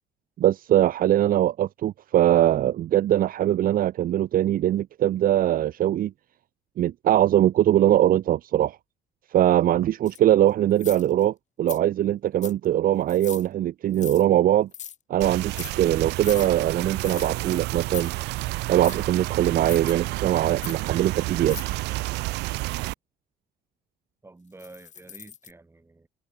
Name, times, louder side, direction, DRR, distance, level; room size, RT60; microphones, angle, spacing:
voice 1, 0.4-6.1 6.8-8.8 9.3-14.7 15.1-18.1 18.7-21.6, right 12 dB, 55° right, 0.9 m, -21 dB
sound 1, 10.1-10.2 10.8-11.2 11.7-11.8 12.4-12.6 13.1-13.5 13.9-14.2 14.7-15.0 15.4-15.7 16.2-16.5 17.0-17.3 17.8-18.1 18.8-19.0 19.6-19.9 20.6-20.8 21.4-21.7 24.6-25.5, left 8 dB, 45° left, 3.7 m, -39 dB
sound 2, 15.2-22.9, right 21 dB, 90° right, 1.5 m, -30 dB
voice 2, 24.2-26.1, right 2 dB, 15° right, 6.6 m, -49 dB
cardioid pair, 110°, 17 cm